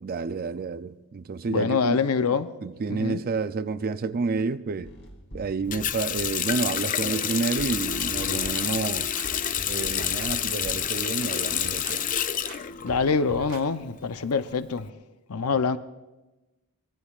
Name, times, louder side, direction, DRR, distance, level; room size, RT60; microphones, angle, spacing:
voice 1, 0.0-2.0 2.6-4.9 5.3-9.1 9.7-12.1 15.5-15.6, right 4 dB, 40° right, 0.4 m, -30 dB
voice 2, 1.5-2.5 2.9-3.2 12.8-14.9 15.3-15.8, left 5 dB, 80° left, 0.7 m, -25 dB
sound 1, 4.8-11.6, equal, 55° left, 2.5 m, -43 dB
Water tap faucet, 5.7-13.4 13.8-14.8, left 9 dB, 35° left, 0.4 m, -28 dB
sound 2, 7.7-8.7 9.1-10.3 10.6-11.0 11.4-12.0 12.5-12.6 12.9-13.6 14.0-14.1, right 2 dB, 70° right, 1.6 m, -43 dB
25.0 x 20.0 x 2.4 m
head